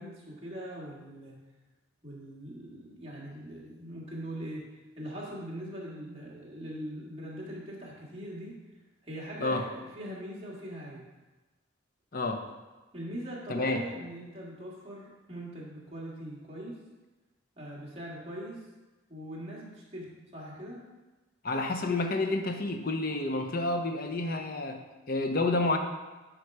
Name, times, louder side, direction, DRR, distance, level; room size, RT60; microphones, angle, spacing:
voice 1, 0.0-1.3 2.0-8.6 9.0-11.0 12.9-16.8 17.6-18.6 19.1-20.8 25.6-25.8, equal, 30° right, -5 dB, 1.9 m, -41 dB
voice 2, 12.1-12.4 13.5-13.8 21.4-25.8, left 2 dB, 45° left, 5 dB, 0.8 m, -29 dB
10.5 x 3.8 x 4.8 m, 1.2 s
head